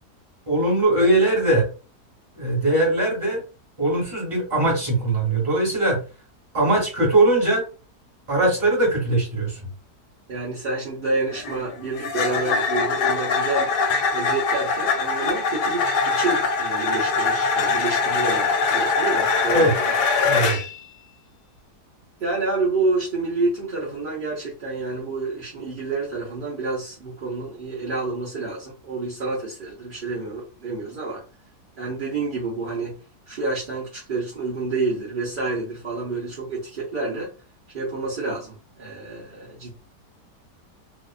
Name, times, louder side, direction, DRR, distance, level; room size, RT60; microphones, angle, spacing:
voice 1, 0.5-1.7 2.3-3.4 3.8-6.0 6.5-7.6 8.3-9.6 19.5-19.7 20.2-20.6, right 2 dB, 20° right, -2 dB, 1.1 m, -20 dB
voice 2, 10.3-13.7 14.1-19.9 22.2-31.2 31.8-33.0 33.3-37.3 37.7-39.7, right 3 dB, 50° right, -6 dB, 0.6 m, -28 dB
sound 1, 11.3-20.8, left 4 dB, 90° left, 1.3 m, -23 dB
2.8 x 2.3 x 2.3 m, 0.34 s
omnidirectional pair, 1.8 m